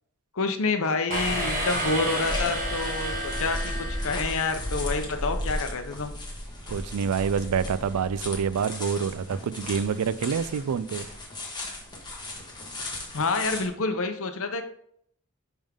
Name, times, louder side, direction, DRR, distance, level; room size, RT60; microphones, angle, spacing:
voice 1, 0.3-6.1 13.1-14.6, left 3 dB, 65° left, 0.9 m, -28 dB
sound 1, 1.1-13.7, left 1 dB, 20° left, 1.4 m, -35 dB
sound 2, 1.1-4.9, equal, 40° right, 1.5 m, -31 dB
voice 2, 6.7-11.1, right 6 dB, 85° right, 0.4 m, -27 dB
10.5 x 3.6 x 3.6 m
head